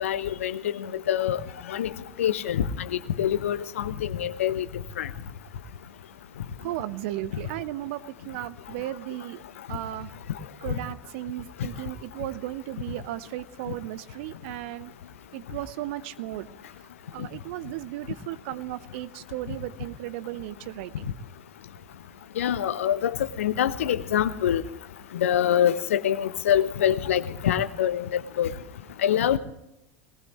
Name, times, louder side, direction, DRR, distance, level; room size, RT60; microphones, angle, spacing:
voice 1, 0.0-1.4 1.7-1.9 2.2-2.9 3.2-4.6 5.0-5.1 22.4-23.1 23.4-24.6 25.1-28.1 28.4-28.5 29.0-29.4, left 10 dB, 70° left, 13 dB, 0.9 m, -25 dB
voice 2, 6.6-9.4 9.7-10.1 10.6-14.9 15.3-16.5 16.8-21.2, right 15 dB, 55° right, 15 dB, 0.9 m, -35 dB
20.0 x 19.5 x 3.1 m, 0.88 s
figure-of-eight pair, 80°, 8 cm